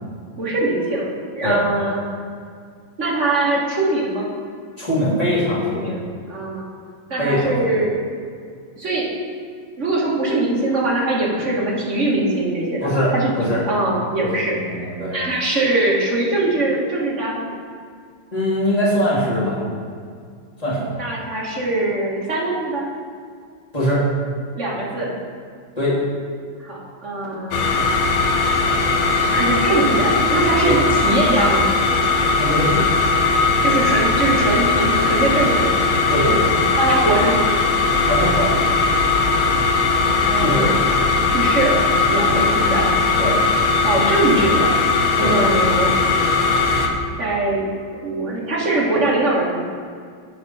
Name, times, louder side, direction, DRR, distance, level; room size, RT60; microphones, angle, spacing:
voice 1, 0.4-2.0 3.0-4.3 5.7-6.7 7.1-8.0 8.8-9.1 9.8-17.5 21.0-22.9 24.5-25.1 26.6-27.7 29.2-31.6 33.6-35.7 36.8-37.4 40.3-41.8 42.1-42.9 43.8-44.7 45.2-46.0 47.2-47.7 48.0-49.6, right 2 dB, 40° right, -4 dB, 1.7 m, -22 dB
voice 2, 4.8-6.0 7.2-7.5 12.8-13.6 14.2-14.3 14.5-15.2 18.3-19.6 20.6-20.8 23.7-24.1 25.8-26.0 30.7-30.8 32.4-32.9 36.1-36.7 38.1-38.6 40.4-40.7 42.3-42.4 43.2-43.4 45.2-45.5, equal, 20° left, -9 dB, 2.2 m, -21 dB
sound 1, 27.5-46.9, left 3 dB, 85° left, 1.7 m, -18 dB
8.2 x 4.9 x 5.5 m, 2.1 s
omnidirectional pair, 2.3 m